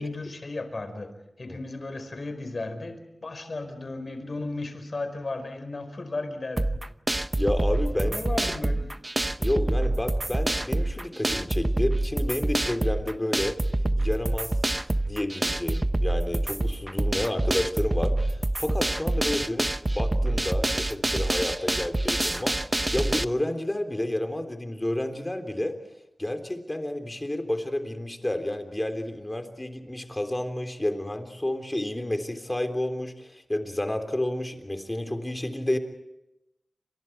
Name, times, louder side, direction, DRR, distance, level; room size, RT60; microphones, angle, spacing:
voice 1, 0.0-6.8 7.9-8.9, left 2 dB, 60° left, 9 dB, 4.8 m, -35 dB
sound 1, 6.6-23.2, right 1 dB, 25° right, 0.8 m, -26 dB
voice 2, 7.4-8.5 9.4-13.6 14.0-14.5 15.0-22.6 22.9-25.8 26.2-35.8, left 1 dB, 20° left, 7 dB, 3.4 m, -30 dB
29.0 x 27.0 x 4.7 m, 0.88 s
wide cardioid pair, 65°, 0 cm